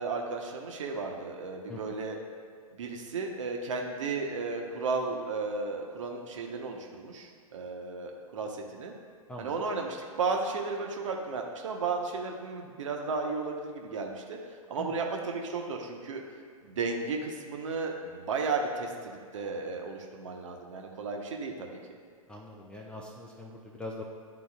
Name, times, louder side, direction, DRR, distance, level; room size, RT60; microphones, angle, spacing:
voice 1, 0.0-2.2 2.7-8.9 9.4-14.4 14.7-16.2 16.6-21.8, right 4 dB, 60° right, 2 dB, 0.9 m, -34 dB
voice 2, 22.3-24.0, left 1 dB, 5° left, -1 dB, 0.4 m, -42 dB
10.5 x 3.9 x 2.4 m, 2.2 s
figure-of-eight pair, 110°, 19 cm